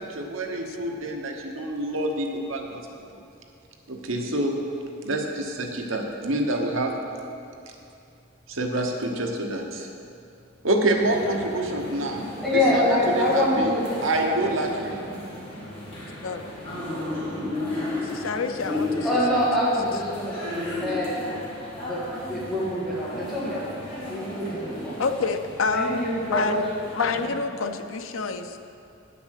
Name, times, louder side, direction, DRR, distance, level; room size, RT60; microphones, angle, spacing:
voice 1, 0.0-2.8 3.9-4.6 5.0-6.9 8.5-9.9 10.6-13.7 14.0-15.0, right 1 dB, 75° right, 2 dB, 1.1 m, -27 dB
sound 1, 10.9-27.3, left 1 dB, 30° left, 2.7 m, -34 dB
voice 2, 12.4-13.8 14.4-14.6 14.9-15.2 19.0-20.5 20.8-21.2 21.7-23.6 24.1-25.0 25.7-26.6, left 1 dB, ahead, -9 dB, 1.9 m, -25 dB
voice 3, 18.0-19.1 25.0-26.0 26.3-26.6 26.9-28.6, left 4 dB, 90° left, 7 dB, 0.7 m, -27 dB
9.8 x 6.9 x 6.6 m, 2.6 s
head